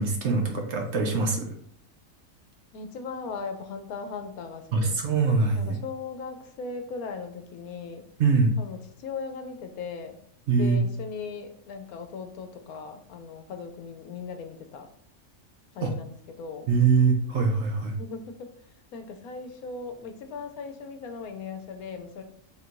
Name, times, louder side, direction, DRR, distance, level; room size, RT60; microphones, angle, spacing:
voice 1, 0.0-1.5 4.7-5.8 8.2-8.6 10.5-10.8 15.8-15.9 16.7-18.0, right 4 dB, 60° right, 2 dB, 0.8 m, -23 dB
voice 2, 2.7-4.9 5.5-8.0 8.6-10.2 10.6-14.9 15.7-16.7 18.0-18.5 18.9-22.2, left 5 dB, 80° left, 6 dB, 1.1 m, -38 dB
3.6 x 2.6 x 4.4 m, 0.63 s
omnidirectional pair, 1.5 m